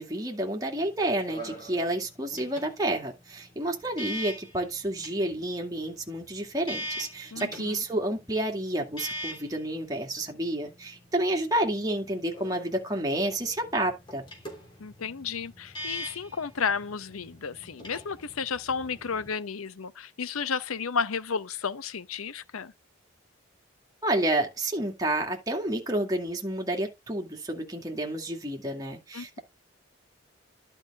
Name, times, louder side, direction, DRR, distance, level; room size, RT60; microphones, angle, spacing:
voice 1, 0.0-14.2 24.0-29.4, right 1 dB, 15° right, 2.2 m, -30 dB
sound 1, 0.7-19.3, equal, 20° left, 3.4 m, -43 dB
voice 2, 7.3-7.8 14.8-22.7 29.1-29.4, left 6 dB, 85° left, 0.7 m, -32 dB
11.5 x 5.5 x 3.4 m
head